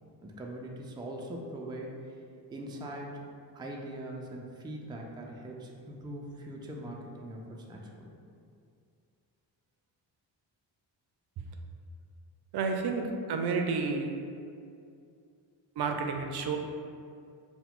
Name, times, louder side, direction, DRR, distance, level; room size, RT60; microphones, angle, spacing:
voice 1, 0.2-1.9 2.5-3.2 3.5-8.1, right 1 dB, 10° right, -1 dB, 0.4 m, -41 dB
voice 2, 12.5-14.1 15.8-16.6, right 4 dB, 60° right, 4 dB, 0.5 m, -30 dB
4.4 x 2.2 x 3.6 m, 2.4 s
cardioid pair, 90°, 45 cm